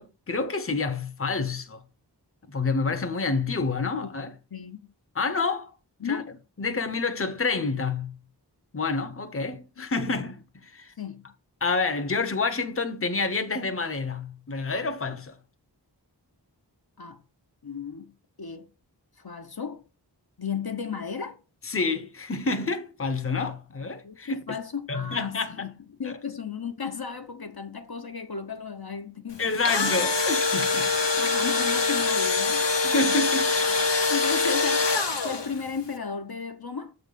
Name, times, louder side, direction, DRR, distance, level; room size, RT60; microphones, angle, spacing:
voice 1, 0.0-1.8 2.5-4.3 5.1-5.7 6.1-6.2 6.6-8.1 8.7-10.9 11.6-15.4 21.6-24.6 24.9-25.7 26.0-26.2 29.4-31.0 32.8-33.5, left 3 dB, 30° left, 0.9 m, -28 dB
voice 2, 4.5-4.9 6.0-6.3 9.8-10.2 11.0-11.3 17.0-17.2 17.6-18.1 18.4-18.7 19.2-19.8 20.4-21.4 24.0-25.7 26.0-29.5 29.8-29.9 31.2-32.7 33.1-33.2 34.1-35.0 35.2-36.9, left 6 dB, 60° left, 1.0 m, -34 dB
Engine / Drill, 29.4-35.6, left 4 dB, 80° left, 1.1 m, -24 dB
7.2 x 4.0 x 5.2 m
wide cardioid pair, 45°, 42 cm